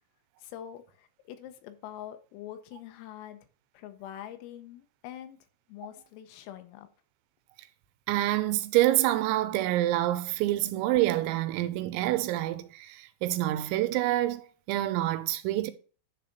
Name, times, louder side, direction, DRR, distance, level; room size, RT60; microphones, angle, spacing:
voice 1, 0.4-3.4 3.8-5.4 5.7-6.9, left 11 dB, 80° left, 3.7 m, -44 dB
voice 2, 8.1-15.7, right 15 dB, 85° right, 3.5 m, -27 dB
10.5 x 4.2 x 6.7 m
omnidirectional pair, 6.0 m